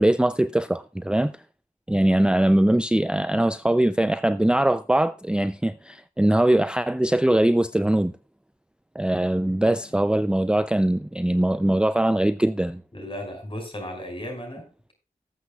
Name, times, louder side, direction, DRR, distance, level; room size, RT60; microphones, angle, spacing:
voice 1, 0.0-1.3 1.9-8.1 9.0-12.8, right 1 dB, 5° right, 0.4 m, -21 dB
voice 2, 12.9-14.9, equal, 35° left, 5.4 m, -35 dB
18.5 x 8.0 x 2.3 m
wide cardioid pair, 60°, 15 cm